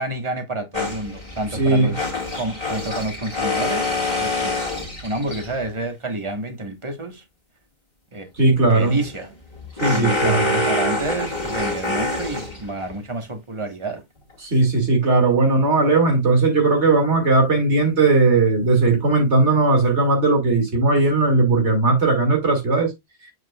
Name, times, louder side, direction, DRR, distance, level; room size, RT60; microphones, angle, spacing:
voice 1, 0.0-3.9 4.2-4.6 5.0-7.2 8.1-9.3 9.9-14.0, right 2 dB, 25° right, 1.4 m, -29 dB
sound 1, 0.7-5.7 8.7-12.9, left 2 dB, 35° left, 2.1 m, -26 dB
voice 2, 1.5-1.9 8.4-9.0 9.8-10.6 14.4-22.9, right 3 dB, 85° right, 2.6 m, -18 dB
7.3 x 6.3 x 2.3 m
omnidirectional pair, 1.1 m